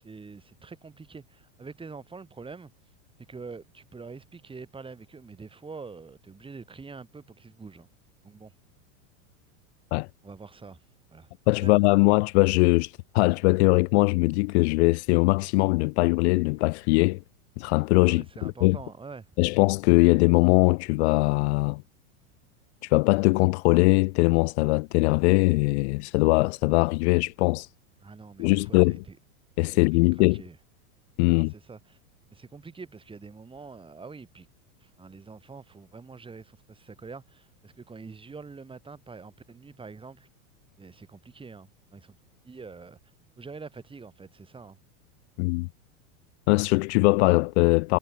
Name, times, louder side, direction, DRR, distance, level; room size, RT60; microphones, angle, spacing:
voice 1, 0.0-2.7 3.3-7.9 8.2-8.5 10.2-10.8 11.1-11.3 11.6-11.9 18.1-19.3 28.0-29.2 29.7-30.6 31.3-32.0 32.3-34.5 34.8-40.3 40.8-42.1 42.4-43.0 43.4-44.8, right 4 dB, 10° right, 4.8 m, -45 dB
voice 2, 11.5-17.2 17.6-18.2 18.6-18.8 19.4-21.8 22.8-27.7 28.4-29.0 29.6-30.4 31.2-31.5 45.4-45.7 46.5-48.0, left 26 dB, 50° left, 0.5 m, -21 dB
supercardioid pair, 140°, 43 cm